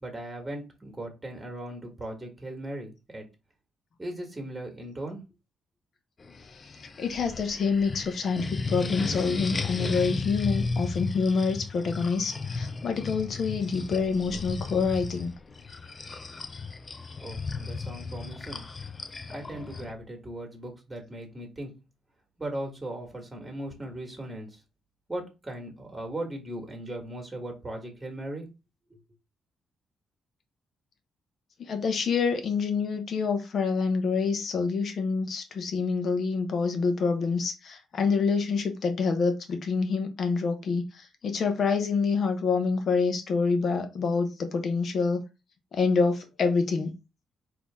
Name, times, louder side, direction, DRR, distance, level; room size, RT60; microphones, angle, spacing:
voice 1, 0.0-3.3 4.0-5.2 17.2-18.6 19.3-21.7 22.4-24.6 25.1-28.5 28.9-29.0, right 1 dB, 15° right, 1.8 m, -38 dB
sound 1, 6.2-19.9, left 4 dB, 35° left, 0.6 m, -35 dB
voice 2, 7.0-15.3 31.7-40.8 41.2-45.2 45.7-46.9, left 5 dB, 60° left, 1.0 m, -27 dB
4.3 x 2.9 x 3.5 m
cardioid pair, 80°, 0 cm